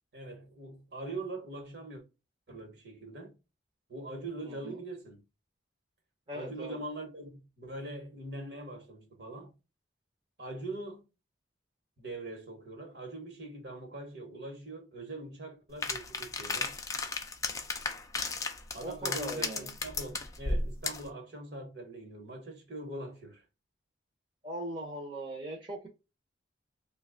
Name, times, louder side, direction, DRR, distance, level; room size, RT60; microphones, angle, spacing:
voice 1, 0.1-2.0 2.5-3.3 3.9-5.2 6.3-9.5 10.4-11.1 12.0-16.8 18.7-23.4, right 2 dB, 60° right, 1.1 m, -42 dB
voice 2, 4.4-4.8 6.3-6.8 18.8-19.7 24.4-25.9, right 1 dB, 30° right, 0.7 m, -39 dB
sound 1, 15.8-21.1, left 3 dB, 15° left, 0.3 m, -34 dB
3.0 x 2.3 x 3.6 m
head